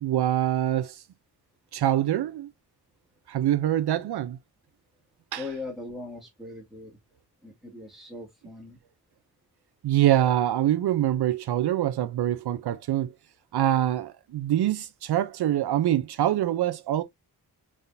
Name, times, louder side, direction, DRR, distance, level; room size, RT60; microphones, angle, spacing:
voice 1, 0.0-1.0 1.7-2.5 3.3-4.4 5.3-5.4 9.8-13.1 13.5-17.0, right 12 dB, 80° right, 0.5 m, -24 dB
voice 2, 5.4-7.0 7.4-8.8, left 3 dB, ahead, 1.8 m, -39 dB
4.0 x 3.6 x 2.5 m
wide cardioid pair, 155°, 39 cm